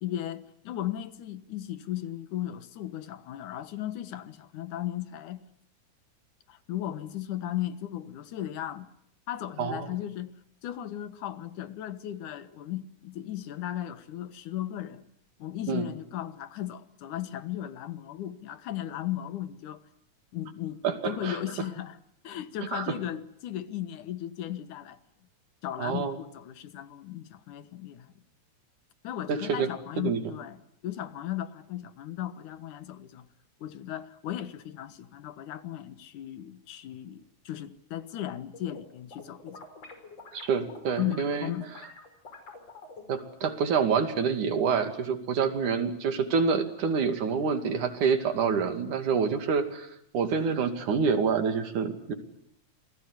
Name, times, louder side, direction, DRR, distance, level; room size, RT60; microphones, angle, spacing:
voice 1, 0.0-5.4 6.5-8.9 9.3-10.3 10.6-15.0 15.4-19.8 20.3-22.0 22.2-25.0 25.6-28.1 29.0-30.6 30.8-33.3 33.6-39.6 41.0-41.7, left 12 dB, 90° left, 2.8 m, -36 dB
voice 2, 9.6-9.9 15.7-15.8 20.8-21.4 22.7-22.9 25.8-26.2 29.3-29.7 30.0-30.2 40.3-41.5 43.1-49.9 50.1-52.1, right 6 dB, 80° right, 4.0 m, -27 dB
sound 1, 38.3-38.8 39.1-43.3, left 3 dB, 55° left, 6.6 m, -46 dB
28.0 x 20.5 x 9.6 m
omnidirectional pair, 3.4 m